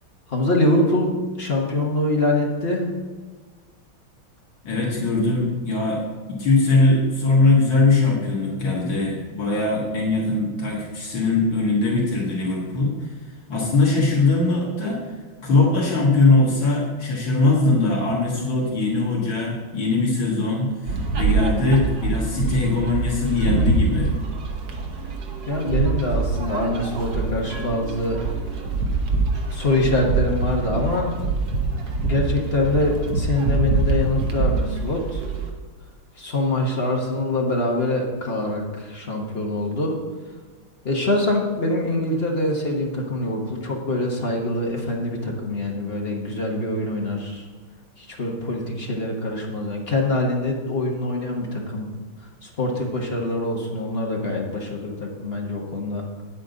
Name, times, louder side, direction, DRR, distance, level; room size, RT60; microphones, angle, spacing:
voice 1, 0.3-1.1 1.4-2.9 25.5-28.2 29.5-31.1 32.0-35.2 36.2-40.0 40.8-47.4 48.0-51.9 52.4-56.0, left 2 dB, 35° left, -1 dB, 1.2 m, -24 dB
voice 2, 4.6-6.0 6.3-13.1 13.5-15.1 15.4-24.1, left 3 dB, 65° left, -4 dB, 2.3 m, -21 dB
sound 1, 20.9-35.5, right 4 dB, 55° right, 1.4 m, -25 dB
9.3 x 8.8 x 3.9 m, 1.4 s
omnidirectional pair, 2.3 m